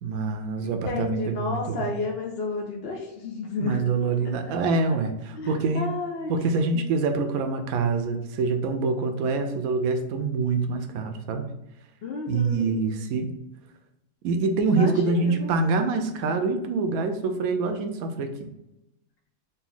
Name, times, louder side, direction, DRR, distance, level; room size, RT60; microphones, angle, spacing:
voice 1, 0.0-1.9 3.6-5.9 6.3-11.5 12.3-13.3 14.2-18.5, right 4 dB, 70° right, 6 dB, 1.0 m, -25 dB
voice 2, 0.6-3.8 5.3-6.4 12.0-12.8 14.7-15.5, left 3 dB, 70° left, 0 dB, 0.5 m, -32 dB
4.0 x 2.4 x 3.8 m, 0.92 s
omnidirectional pair, 1.7 m